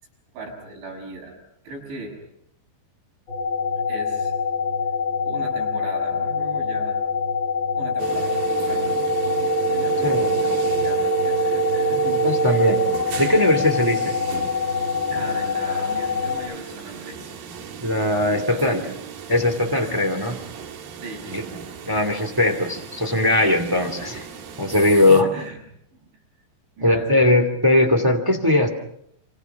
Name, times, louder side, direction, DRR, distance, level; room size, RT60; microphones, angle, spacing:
voice 1, 0.3-1.4 1.6-2.2 3.9-4.3 5.3-7.0 7.8-12.6 15.1-17.4 18.2-19.0 19.7-20.1 21.0-21.8 24.9-25.6 25.9-26.1 26.8-27.2, right 2 dB, 75° right, 2 dB, 9.1 m, -38 dB
sound 1, 3.3-16.4, left 6 dB, 25° left, 7.1 m, -25 dB
sound 2, 8.0-25.2, right 14 dB, 55° right, 3.6 m, -29 dB
voice 2, 12.2-12.8 13.2-14.1 17.8-18.8 19.3-20.3 21.3-21.4 21.8-24.3 24.6-25.3 26.8-28.7, left 1 dB, 10° right, 7 dB, 1.0 m, -19 dB
29.0 x 27.0 x 6.0 m, 0.76 s
omnidirectional pair, 5.4 m